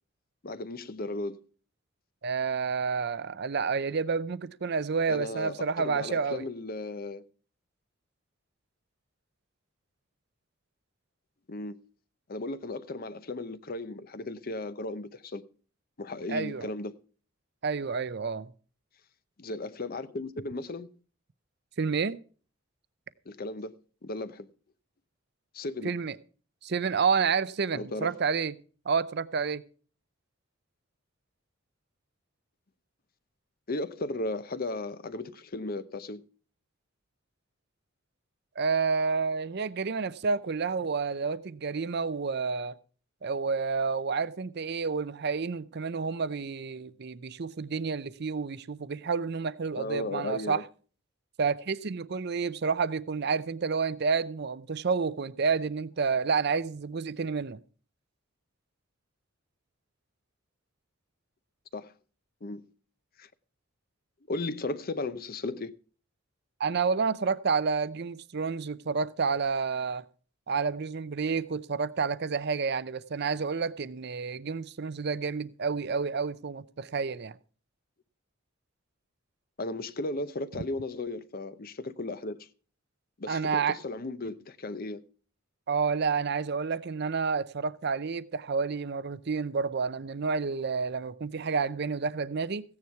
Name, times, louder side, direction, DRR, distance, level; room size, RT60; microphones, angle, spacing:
voice 1, 0.4-1.4 5.1-7.2 11.5-11.8 12.3-15.4 16.0-17.0 19.4-20.9 23.3-23.7 24.0-24.5 25.5-25.9 27.7-28.1 33.7-36.2 49.8-50.6 61.7-61.9 62.4-62.7 63.2-63.3 64.3-65.7 79.6-82.5 83.2-85.0, left 2 dB, 45° left, 0.7 m, -35 dB
voice 2, 2.2-6.5 16.3-16.7 17.6-18.5 21.8-22.2 25.8-26.2 26.6-28.5 28.9-29.6 38.6-42.8 43.2-50.6 51.4-57.6 66.6-70.0 70.5-77.4 83.3-83.8 85.7-92.6, right 5 dB, 55° right, 0.6 m, -29 dB
15.5 x 9.7 x 4.6 m
head